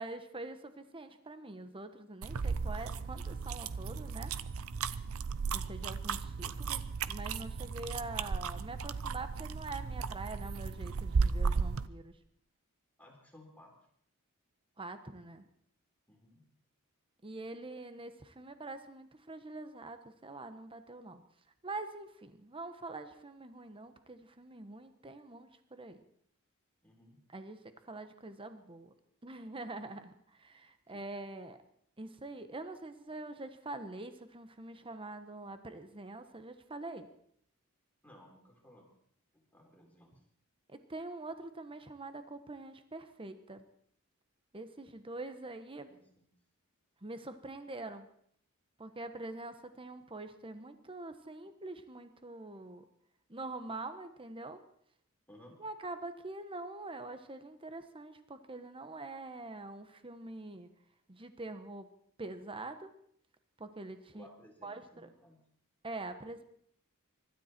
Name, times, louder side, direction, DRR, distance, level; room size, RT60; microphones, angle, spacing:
voice 1, 0.0-4.3 5.5-12.2 14.8-15.5 17.2-21.2 21.6-26.0 27.3-28.9 29.2-31.6 32.0-37.1 40.7-43.7 44.5-45.9 47.0-48.1 48.8-52.8 53.3-54.6 55.6-60.7 61.1-61.9 62.2-62.9 63.6-64.3 64.6-65.1 65.8-66.4, right 2 dB, 25° right, 9 dB, 1.1 m, -45 dB
sound 1, 2.2-11.9, right 5 dB, 65° right, 0.6 m, -35 dB
voice 2, 13.0-13.7 16.1-16.4 26.8-27.2 30.9-31.1 38.0-38.9 39.3-40.1 45.9-46.3 55.3-55.6 64.1-65.4, left 1 dB, 5° left, 0 dB, 3.8 m, -58 dB
24.5 x 13.0 x 4.5 m, 0.67 s
head